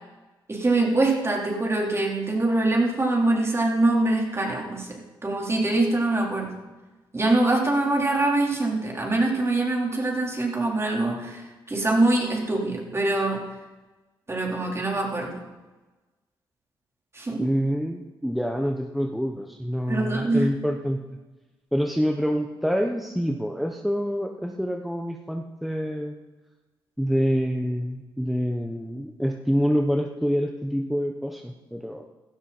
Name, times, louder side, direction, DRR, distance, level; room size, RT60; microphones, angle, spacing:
voice 1, 0.5-6.5 7.1-11.4 11.7-13.4 14.3-15.3 17.1-17.5 19.9-20.5, right 2 dB, 30° right, -1 dB, 4.2 m, -24 dB
voice 2, 17.4-21.0 21.7-26.2 27.0-32.0, equal, ahead, 3 dB, 1.2 m, -26 dB
16.5 x 13.0 x 4.4 m, 1.2 s
cardioid pair, 65°, 9 cm